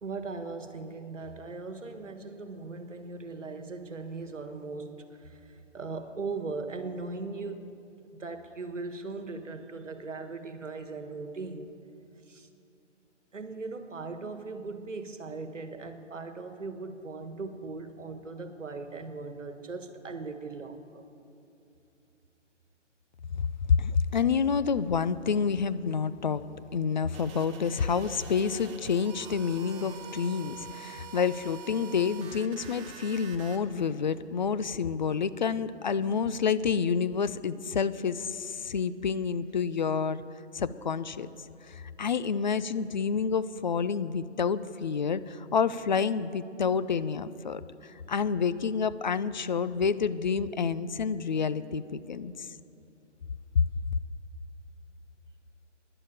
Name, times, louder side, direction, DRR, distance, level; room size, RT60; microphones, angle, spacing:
voice 1, 0.0-7.8 8.1-11.7 12.3-12.5 13.3-21.0, right 3 dB, 80° right, 8 dB, 1.6 m, -39 dB
voice 2, 23.3-26.4 26.7-40.2 40.5-41.3 41.6-52.5 53.5-53.6, left 6 dB, 40° left, 14 dB, 0.4 m, -28 dB
sound 1, 27.1-33.6, right 6 dB, 25° right, 1.2 m, -46 dB
12.5 x 11.0 x 8.9 m, 2.8 s
figure-of-eight pair, 140°, 36 cm